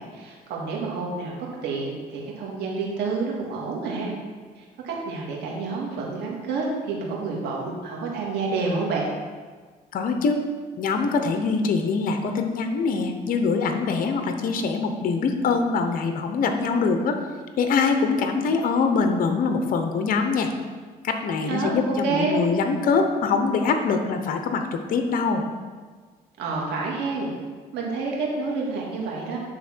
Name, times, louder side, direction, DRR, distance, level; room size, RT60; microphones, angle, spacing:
voice 1, 0.0-1.3 1.6-4.1 4.6-9.1 21.5-22.4 26.4-27.3 27.7-29.4, right 4 dB, 85° right, -2 dB, 2.1 m, -28 dB
voice 2, 9.9-10.4 10.8-17.2 17.6-20.5 21.0-25.4, left 4 dB, 55° left, 5 dB, 0.9 m, -23 dB
10.0 x 3.6 x 6.1 m, 1.5 s
cardioid pair, 110°, 17 cm